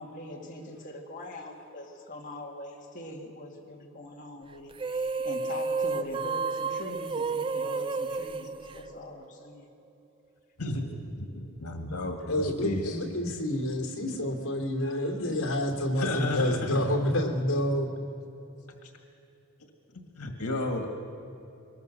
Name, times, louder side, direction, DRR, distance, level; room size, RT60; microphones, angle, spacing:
voice 1, 0.0-9.6 11.3-11.5 11.8-12.1, left 1 dB, 35° left, -2 dB, 2.3 m, -42 dB
sound 1, 4.7-9.4, right 4 dB, 25° right, 0.4 m, -31 dB
voice 2, 11.2-13.0 16.0-16.8 17.0-17.1 18.8-18.9 19.9-20.9, left 2 dB, 85° left, 3 dB, 2.0 m, -33 dB
voice 3, 12.3-17.9, left 1 dB, 65° left, 1 dB, 2.9 m, -28 dB
23.5 x 20.0 x 6.8 m, 2.8 s
head